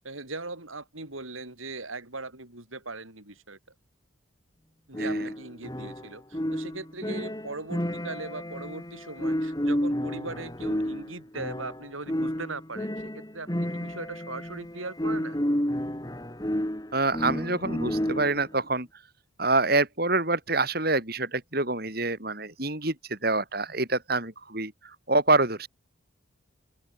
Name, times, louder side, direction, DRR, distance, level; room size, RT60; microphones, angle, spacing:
voice 1, 0.0-3.6 4.9-15.4, right 3 dB, 90° right, 7.9 m, -39 dB
sound 1, 4.9-18.5, equal, 20° left, 2.1 m, -31 dB
voice 2, 16.9-18.9 19.4-25.7, right 2 dB, 50° right, 5.5 m, -26 dB
open air
head